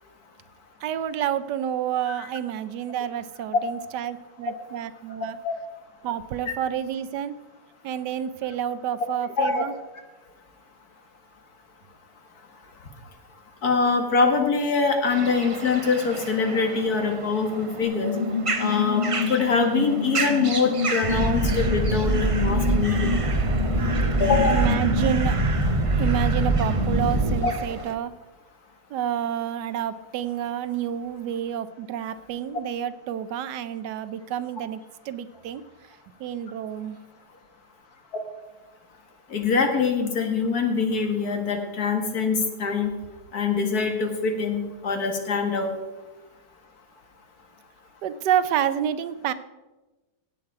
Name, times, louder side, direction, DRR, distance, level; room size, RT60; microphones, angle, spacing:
voice 1, 0.8-5.4 6.0-7.3 7.8-9.7 24.5-25.4 26.0-28.1 28.9-34.8 35.1-35.6 36.2-37.0 48.0-49.3, right 10 dB, 85° right, 13 dB, 1.3 m, -29 dB
voice 2, 13.6-18.1 18.6-23.1 24.2-24.7 27.4-27.5 39.3-42.9 43.3-45.7, left 4 dB, 65° left, 4 dB, 2.1 m, -24 dB
sound 1, 15.1-28.0, right 4 dB, 55° right, 0.3 m, -34 dB
sound 2, 17.8-25.2, left 4 dB, 45° left, 1.1 m, -29 dB
sound 3, 21.0-27.3, right 2 dB, 20° right, 1.7 m, -23 dB
17.0 x 7.9 x 4.8 m, 1.1 s
omnidirectional pair, 1.8 m